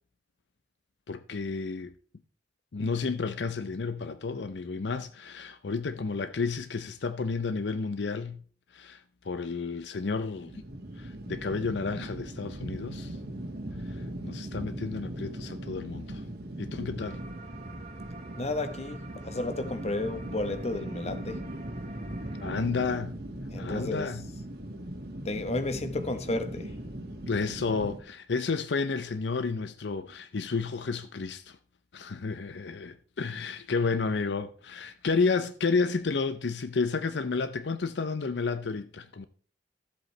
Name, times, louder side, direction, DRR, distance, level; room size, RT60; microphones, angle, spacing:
voice 1, 1.1-2.0 2.7-8.4 8.7-10.6 11.0-13.2 13.8-16.2 16.6-17.2 22.4-23.2 23.6-24.2 27.3-31.6 31.9-39.3, left 4 dB, 75° left, 0.6 m, -31 dB
sound 1, 10.3-28.0, right 1 dB, 60° right, 1.8 m, -39 dB
sound 2, 17.0-22.7, right 3 dB, 40° right, 1.3 m, -49 dB
voice 2, 18.4-21.4 23.5-24.1 25.2-26.7, left 2 dB, 40° left, 1.0 m, -32 dB
14.0 x 7.8 x 3.2 m
head